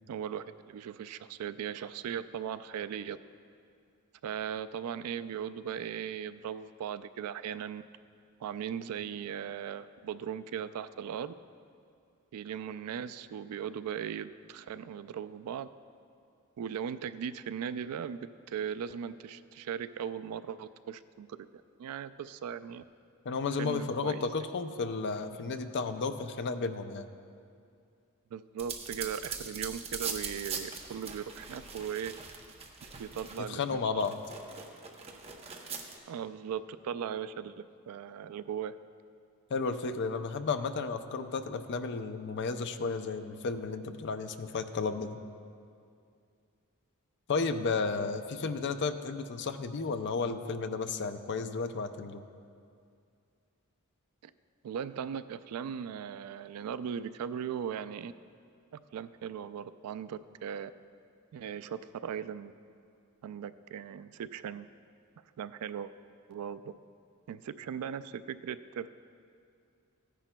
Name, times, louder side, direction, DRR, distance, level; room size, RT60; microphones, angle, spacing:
voice 1, 0.1-3.2 4.2-7.8 8.4-11.3 12.3-15.7 16.6-18.2 18.5-22.8 23.6-24.3 28.3-32.2 33.0-34.0 36.1-38.7 54.2-54.3 54.6-58.1 58.7-60.7 61.3-62.5 63.2-64.7 65.4-65.9 66.3-66.7 67.3-68.9, right 8 dB, 80° right, 13 dB, 0.3 m, -38 dB
voice 2, 23.2-27.1 33.4-34.1 39.5-45.2 47.3-52.2, left 4 dB, 50° left, 9 dB, 0.4 m, -33 dB
sound 1, 28.6-33.6 34.0-36.0, right 5 dB, 30° right, 0.7 m, -41 dB
14.5 x 10.0 x 2.2 m, 2.4 s
head